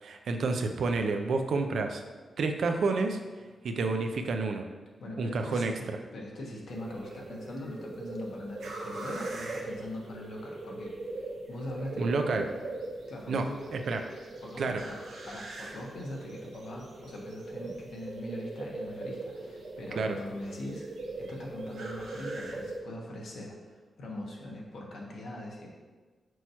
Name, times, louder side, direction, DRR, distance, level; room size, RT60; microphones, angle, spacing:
voice 1, 0.0-2.0 2.4-3.2 3.6-4.6 5.2-5.7 12.0-12.4 13.3-13.5 13.7-14.0 14.6-14.8 20.0-20.2, right 3 dB, 65° right, 5 dB, 0.5 m, -29 dB
voice 2, 5.0-12.4 13.1-13.6 14.4-15.0 15.2-20.8 21.2-25.7, left 1 dB, 65° left, -2 dB, 1.3 m, -41 dB
sound 1, 6.7-22.8, right 2 dB, 85° right, 1.0 m, -40 dB
6.2 x 3.0 x 5.6 m, 1.3 s
wide cardioid pair, 175°, 0 cm